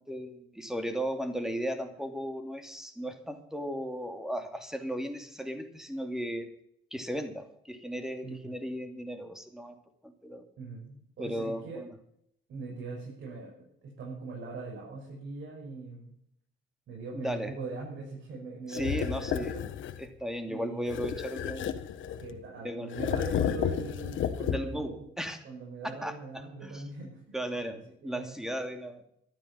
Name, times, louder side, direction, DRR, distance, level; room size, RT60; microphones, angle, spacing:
voice 1, 0.0-6.5 6.9-9.8 10.0-10.5 11.2-11.9 17.1-17.5 18.7-19.5 20.0-21.8 22.6-22.9 24.5-25.4 26.0-26.1 26.6-26.8 27.3-29.1, equal, ahead, 6 dB, 2.6 m, -36 dB
voice 2, 8.2-8.5 10.6-11.8 12.5-16.1 16.9-19.7 20.5-21.2 22.2-25.1 25.4-27.4 27.7-28.4, right 3 dB, 70° right, -2 dB, 6.5 m, -41 dB
sound 1, 18.7-20.1 20.9-22.4 22.9-24.9, left 9 dB, 75° left, 1.3 m, -32 dB
13.5 x 13.0 x 5.9 m, 0.73 s
cardioid pair, 90°, 20 cm